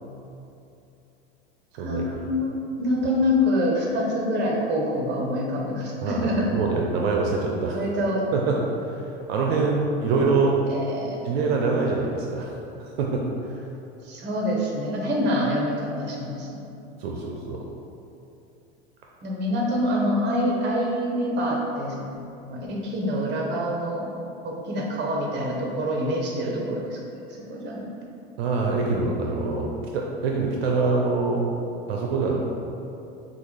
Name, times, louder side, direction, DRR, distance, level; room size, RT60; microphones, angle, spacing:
voice 1, 1.8-6.5 7.7-8.2 10.7-11.2 14.0-16.5 19.2-22.0 22.4-24.1 24.4-27.0 27.5-27.8, equal, 35° right, -2 dB, 1.1 m, -26 dB
voice 2, 6.5-7.8 8.3-10.6 11.2-12.6 13.0-13.6 17.0-17.6 28.4-31.4 31.9-32.4, right 4 dB, 75° right, -1 dB, 0.6 m, -25 dB
6.5 x 2.4 x 3.3 m, 2.7 s
hypercardioid pair, 95°, 31 cm